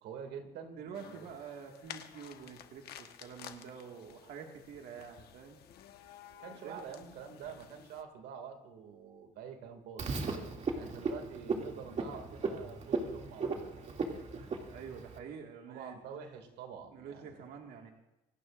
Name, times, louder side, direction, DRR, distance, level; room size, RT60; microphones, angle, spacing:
voice 1, 0.0-1.3 6.4-10.1 10.7-13.7 15.7-17.4, right 7 dB, 85° right, 5 dB, 2.4 m, -47 dB
voice 2, 0.8-5.6 6.6-7.1 14.7-16.0 16.9-17.9, right 6 dB, 70° right, 1 dB, 2.0 m, -47 dB
sound 1, 0.9-8.0, left 10 dB, 70° left, 1.3 m, -53 dB
Frog, 10.0-15.2, right 4 dB, 45° right, 2.6 m, -37 dB
27.5 x 17.5 x 2.6 m, 0.94 s
cardioid pair, 110°, 17 cm